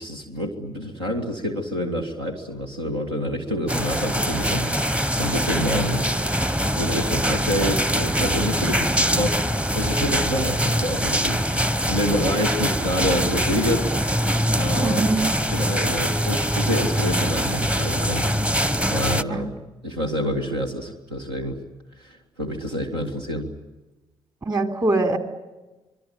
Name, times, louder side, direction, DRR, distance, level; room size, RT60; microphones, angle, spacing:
voice 1, 0.0-6.1 6.6-15.0 15.5-18.6 18.9-19.5 19.8-21.6 22.0-23.5, equal, 85° right, 2 dB, 2.1 m, -28 dB
sound 1, 3.7-19.2, equal, 10° right, 1.0 m, -23 dB
voice 2, 14.8-15.4 19.3-19.4 24.4-25.2, right 2 dB, 30° right, 5 dB, 3.6 m, -22 dB
26.0 x 23.0 x 9.3 m, 1.1 s
figure-of-eight pair, 45°, 13 cm